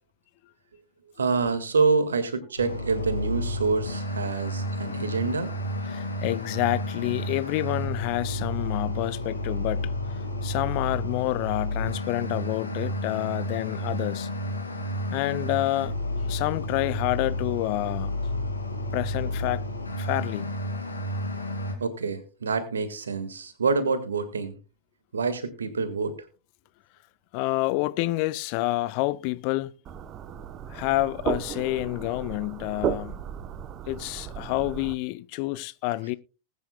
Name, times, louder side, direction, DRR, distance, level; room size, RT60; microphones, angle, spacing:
voice 1, 1.2-5.5 21.8-24.5 25.1-26.2, right 4 dB, 70° right, 1.7 m, -27 dB
sound 1, 2.6-21.7, left 1 dB, 80° left, 2.4 m, -31 dB
voice 2, 5.8-9.9 10.4-14.3 15.1-15.9 16.3-18.2 18.9-19.6 20.0-20.5 27.3-29.7 30.7-33.2 33.9-36.1, left 18 dB, 45° left, 0.5 m, -28 dB
sound 2, 29.8-34.9, right 9 dB, 30° right, 0.8 m, -34 dB
20.0 x 9.2 x 2.2 m
figure-of-eight pair, 90°, 0 cm